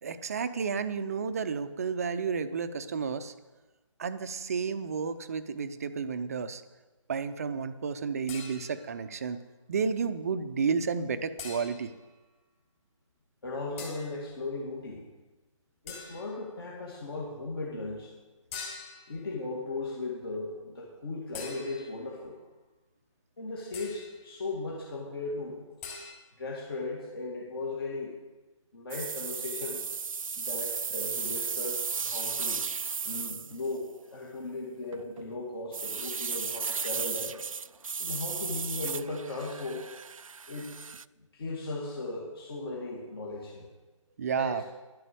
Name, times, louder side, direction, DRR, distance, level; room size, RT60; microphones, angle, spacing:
voice 1, 0.0-3.3 4.0-6.6 7.1-9.4 9.7-11.9 44.2-44.6, right 5 dB, 30° right, 11 dB, 0.6 m, -31 dB
sound 1, 8.3-9.0 11.4-12.0 13.8-14.2 15.9-16.4 18.5-19.2 21.3-22.1 23.7-24.2 25.8-26.1, left 4 dB, 25° left, 2.8 m, -43 dB
voice 2, 13.4-15.0 15.8-18.1 19.1-22.4 23.4-25.6 26.4-28.2 28.7-29.8 30.4-32.7 33.0-37.4 38.0-39.9 40.5-40.7 41.3-43.7 44.4-44.6, left 2 dB, 45° left, -3 dB, 2.3 m, -37 dB
sound 2, 28.9-33.8 34.9-35.2 35.7-41.0, right 5 dB, 80° right, 0.4 m, -35 dB
11.5 x 8.0 x 7.7 m, 1.2 s
figure-of-eight pair, 150°, 17 cm